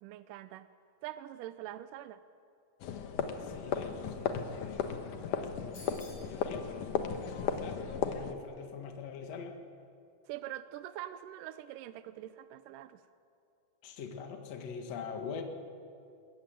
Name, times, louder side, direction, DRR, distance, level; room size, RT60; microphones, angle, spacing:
voice 1, 0.0-0.7 1.0-2.2 10.3-13.0, right 13 dB, 75° right, 12 dB, 2.1 m, -44 dB
sound 1, 2.8-8.3, left 7 dB, 65° left, 2.4 m, -35 dB
voice 2, 3.4-9.6 13.8-15.4, left 6 dB, 50° left, 4 dB, 2.6 m, -44 dB
sound 2, 5.7-6.4, left 2 dB, 35° left, 5.8 m, -51 dB
22.0 x 21.5 x 9.1 m, 2.5 s
omnidirectional pair, 4.3 m